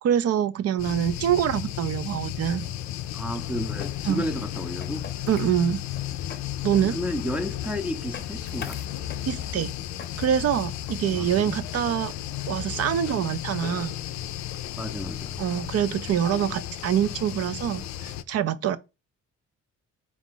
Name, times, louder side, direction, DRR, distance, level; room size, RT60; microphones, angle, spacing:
voice 1, 0.0-2.7 4.1-4.2 5.3-5.8 6.6-7.0 9.3-9.7 10.2-12.1 12.5-13.9 15.4-18.8, right 10 dB, 55° right, 0.5 m, -25 dB
sound 1, 0.8-18.2, left 12 dB, 65° left, 0.4 m, -34 dB
voice 2, 3.1-5.0 6.8-8.8 11.1-11.5 14.8-15.4, left 1 dB, 5° right, 0.6 m, -32 dB
sound 2, 3.6-11.7, left 6 dB, 35° left, 0.7 m, -46 dB
3.8 x 2.5 x 3.7 m
cardioid pair, 90°, 30 cm